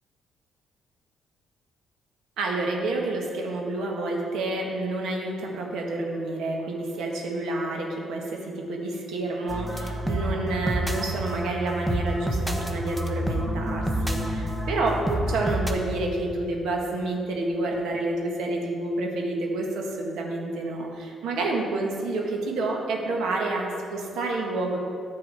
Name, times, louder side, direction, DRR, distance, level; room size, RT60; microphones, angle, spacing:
voice 1, 2.4-24.8, right 2 dB, 80° right, 0 dB, 1.5 m, -29 dB
sound 1, 9.5-15.7, right 1 dB, 10° right, 1.0 m, -28 dB
9.5 x 4.7 x 7.6 m, 2.5 s
cardioid pair, 90°, 0 cm